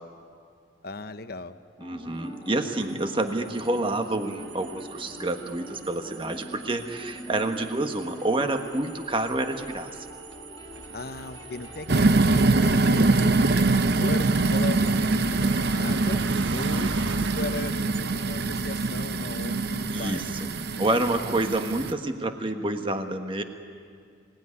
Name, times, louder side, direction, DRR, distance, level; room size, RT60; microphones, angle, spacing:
voice 1, 0.8-1.5 10.9-13.6 14.0-16.2 16.5-16.9 17.2-20.9, left 3 dB, 50° left, 10 dB, 0.9 m, -37 dB
sound 1, 1.8-13.5, left 1 dB, 20° left, 2.3 m, -44 dB
voice 2, 1.8-9.9 19.9-20.5 20.8-23.4, right 2 dB, 25° right, 6 dB, 1.3 m, -28 dB
sound 2, 2.6-21.1, right 3 dB, 75° right, 1.2 m, -41 dB
kettle quickboil, 11.9-21.9, right 3 dB, 55° right, 0.7 m, -24 dB
25.5 x 19.0 x 9.8 m, 2.2 s
head